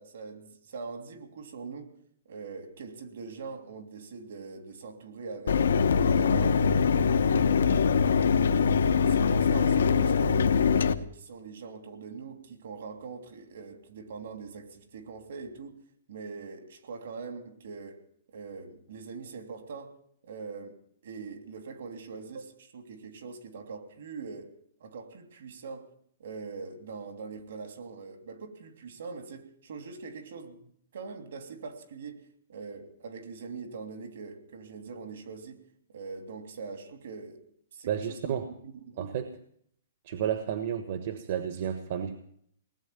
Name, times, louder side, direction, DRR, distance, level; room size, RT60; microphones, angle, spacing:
voice 1, 0.0-1.9 2.2-5.7 6.0-6.8 7.2-7.8 8.6-15.8 16.1-18.0 18.3-19.9 20.2-20.8 21.0-24.5 24.8-25.9 26.2-32.2 32.5-35.6 35.9-37.4 37.7-38.4 38.6-39.1, right 4 dB, 70° right, 3.0 m, -42 dB
Mechanisms, 5.5-10.9, left 6 dB, 80° left, 1.0 m, -23 dB
voice 2, 37.9-38.5 39.0-39.3 40.0-42.2, right 9 dB, 55° right, 1.4 m, -31 dB
19.0 x 8.1 x 9.4 m
hypercardioid pair, 140°, 0 cm